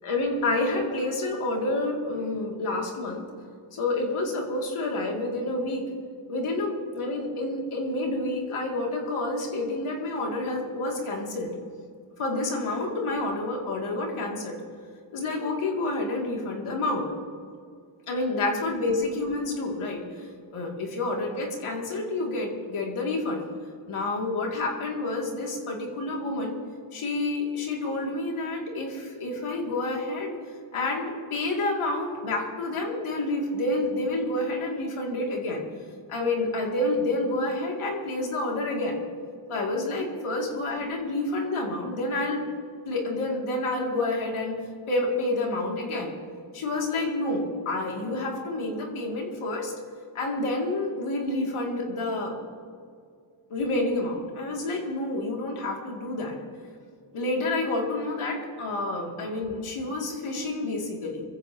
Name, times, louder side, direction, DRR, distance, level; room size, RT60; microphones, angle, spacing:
voice 1, 0.0-3.2 3.7-5.8 6.3-11.5 12.2-14.6 15.1-17.1 18.1-23.4 23.9-26.5 26.9-30.4 30.7-35.6 36.1-39.0 39.5-42.4 42.9-44.6 44.9-46.1 46.5-49.7 50.1-52.3 53.5-56.4 57.1-61.2, left 2 dB, 85° left, -1 dB, 2.8 m, -29 dB
22.5 x 15.0 x 3.0 m, 2.2 s
cardioid pair, 65°, 49 cm